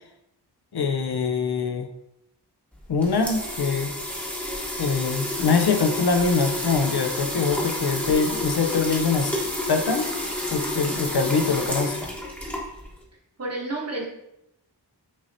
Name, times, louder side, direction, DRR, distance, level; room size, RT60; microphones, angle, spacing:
voice 1, 0.7-1.9 2.9-3.9 4.8-9.3 9.7-10.1 10.5-12.1, left 4 dB, 65° left, 6 dB, 0.6 m, -23 dB
sound 1, 2.7-13.0, left 1 dB, 5° left, 0.9 m, -30 dB
voice 2, 13.4-14.1, right 2 dB, 35° right, -2 dB, 1.1 m, -30 dB
6.1 x 2.8 x 2.6 m, 0.83 s
wide cardioid pair, 80°, 42 cm